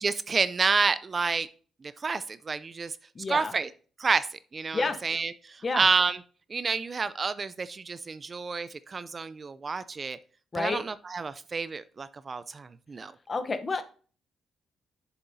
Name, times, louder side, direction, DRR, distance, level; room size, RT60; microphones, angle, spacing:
voice 1, 0.0-1.5 2.0-2.9 3.3-3.7 4.0-4.3 4.5-6.2 6.5-10.2 10.5-10.8 11.1-13.1, right 4 dB, 35° right, 15 dB, 0.3 m, -29 dB
voice 2, 3.1-3.5 4.7-5.0 5.6-5.9 10.5-10.8 13.3-13.8, left 3 dB, 30° left, 10 dB, 0.8 m, -29 dB
7.1 x 6.9 x 2.7 m, 0.41 s
cardioid pair, 90°, 0 cm